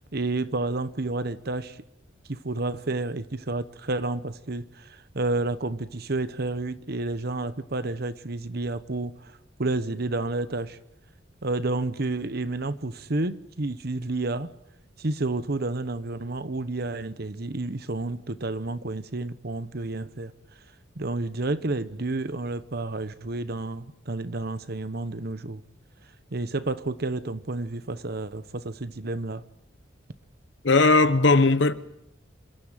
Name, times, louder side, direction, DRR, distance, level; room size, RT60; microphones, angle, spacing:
voice 1, 0.1-1.8 2.3-10.8 11.4-14.5 15.0-20.3 21.0-25.6 26.3-29.4, right 2 dB, 55° right, 1.0 m, -30 dB
voice 2, 30.6-31.7, left 3 dB, 65° left, 1.1 m, -18 dB
26.5 x 13.5 x 9.1 m
head